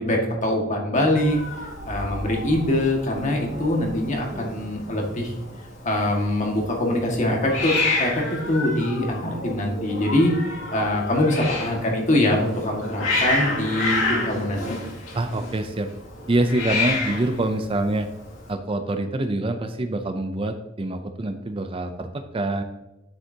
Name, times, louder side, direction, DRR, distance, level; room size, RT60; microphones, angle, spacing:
voice 1, 0.0-1.4 1.8-5.3 5.8-10.3 10.7-14.6, left 1 dB, 40° left, 0 dB, 1.8 m, -23 dB
Hiss, 1.2-18.5, left 2 dB, 70° left, 2.6 m, -30 dB
voice 2, 15.1-15.9 16.3-18.1 18.5-22.6, right 2 dB, 25° right, 7 dB, 0.5 m, -25 dB
9.1 x 7.9 x 2.8 m, 0.99 s
head